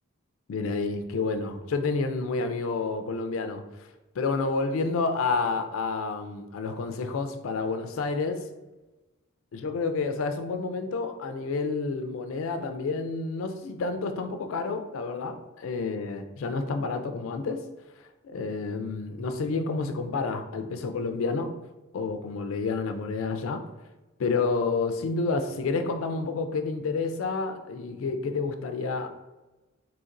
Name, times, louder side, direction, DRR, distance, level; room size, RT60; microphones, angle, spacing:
voice 1, 0.5-3.6 4.2-8.5 9.5-17.6 18.2-21.5 21.9-23.6 24.2-29.1, left 4 dB, 80° left, 8 dB, 0.4 m, -29 dB
4.0 x 2.9 x 2.5 m, 1.1 s
head